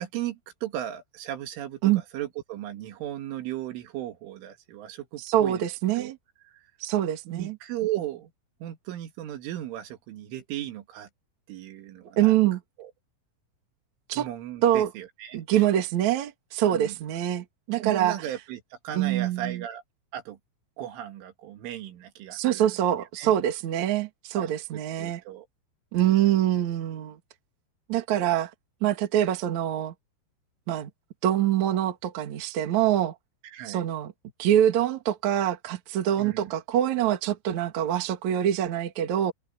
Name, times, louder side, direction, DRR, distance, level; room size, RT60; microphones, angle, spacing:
voice 1, 0.0-5.7 6.0-6.1 6.5-6.7 7.3-8.3 8.6-11.1 11.5-12.4 12.8-12.9 14.1-15.6 16.7-17.0 17.8-19.8 20.1-20.4 20.8-22.8 23.2-23.3 24.4-25.5 33.4-33.9 36.2-36.5, right 12 dB, 85° right, 4.5 m, -36 dB
voice 2, 5.2-6.2 6.8-7.6 12.2-12.6 14.1-14.3 14.6-14.9 15.3-18.2 18.9-19.6 22.3-25.2 25.9-27.2 27.9-28.5 28.8-29.9 30.7-30.9 31.2-33.1 33.7-34.1 34.4-39.3, right 11 dB, 50° right, 2.5 m, -25 dB
omnidirectional pair, 5.5 m